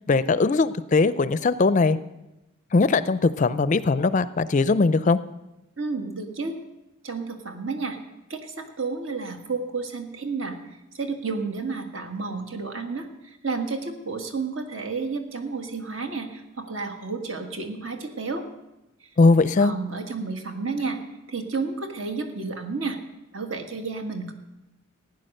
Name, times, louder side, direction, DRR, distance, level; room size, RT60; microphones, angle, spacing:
voice 1, 0.1-2.0 2.7-5.2 19.2-19.7, left 3 dB, 35° left, 15 dB, 0.4 m, -20 dB
voice 2, 5.8-6.5 7.0-8.0 8.3-10.6 10.9-18.4 19.6-21.0 21.3-23.0 23.3-24.3, right 4 dB, 70° right, 5 dB, 1.7 m, -31 dB
16.0 x 9.5 x 6.5 m, 0.97 s
head